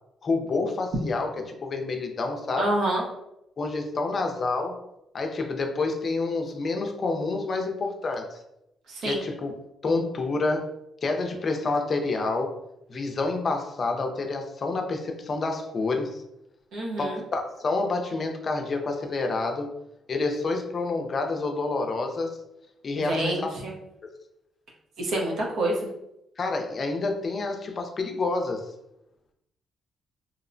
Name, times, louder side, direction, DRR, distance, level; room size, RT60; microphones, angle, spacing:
voice 1, 0.2-2.7 3.6-4.8 5.1-8.4 9.0-9.5 9.8-10.7 11.0-12.6 12.9-16.2 17.0-19.7 20.1-22.4 22.8-23.5 26.4-28.6, left 3 dB, 45° left, 3 dB, 0.4 m, -28 dB
voice 2, 2.6-3.0 8.9-9.2 16.7-17.2 23.0-23.7 25.0-25.9, right 1 dB, 75° right, -2 dB, 0.7 m, -27 dB
2.7 x 2.0 x 2.5 m, 0.85 s
cardioid pair, 90°, 0 cm